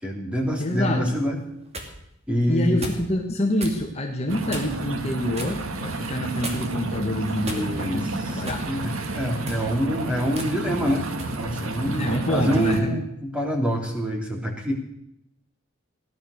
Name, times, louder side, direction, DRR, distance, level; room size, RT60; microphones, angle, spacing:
voice 1, 0.0-1.4 2.3-2.9 7.4-11.0 11.4-14.7, equal, 5° right, 0 dB, 3.3 m, -26 dB
voice 2, 0.6-1.2 2.5-8.6 9.4-9.7 11.8-13.0, left 1 dB, 30° left, 1 dB, 1.8 m, -26 dB
sound 1, 1.4-1.9 2.8-3.1 3.6-3.8 4.5-4.9 5.4-5.6 6.4-6.8 7.4-8.0 8.5-8.7 9.3-9.7 10.4-10.5 11.2-11.4, right 2 dB, 30° right, 2.6 m, -35 dB
sound 2, 4.3-12.8, right 2 dB, 90° right, 1.7 m, -31 dB
17.0 x 11.5 x 6.6 m, 0.78 s
head